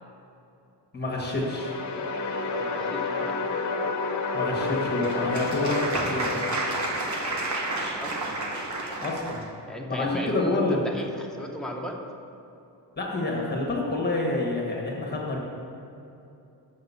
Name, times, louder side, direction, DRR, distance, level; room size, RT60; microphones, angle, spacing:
voice 1, 0.9-1.7 4.3-6.4 9.0-9.4 9.9-10.8 13.0-15.4, left 2 dB, 25° left, -2 dB, 1.4 m, -28 dB
sound 1, 1.1-8.1, left 3 dB, 45° left, 0.8 m, -31 dB
voice 2, 2.5-3.4 8.0-8.5 9.7-12.0, left 1 dB, ahead, 0 dB, 0.8 m, -34 dB
Applause, 4.6-9.5, right 2 dB, 45° right, 1.1 m, -31 dB
7.1 x 5.7 x 6.8 m, 2.8 s
wide cardioid pair, 140°, 41 cm